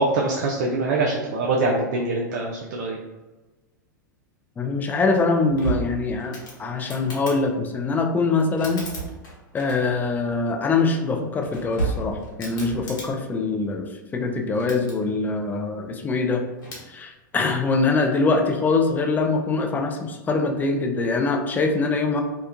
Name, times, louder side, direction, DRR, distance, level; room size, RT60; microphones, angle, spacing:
voice 1, 0.0-3.0, right 2 dB, 60° right, -2 dB, 0.4 m, -24 dB
voice 2, 4.6-8.8 9.5-16.4 16.9-22.2, left 3 dB, 15° left, 4 dB, 0.4 m, -23 dB
sound 1, 5.1-7.4 8.4-10.1 11.2-13.1 14.4-14.9 16.6-16.9, right 3 dB, 70° left, 0.9 m, -33 dB
2.9 x 2.1 x 2.4 m, 1.1 s
hypercardioid pair, 105°, 11 cm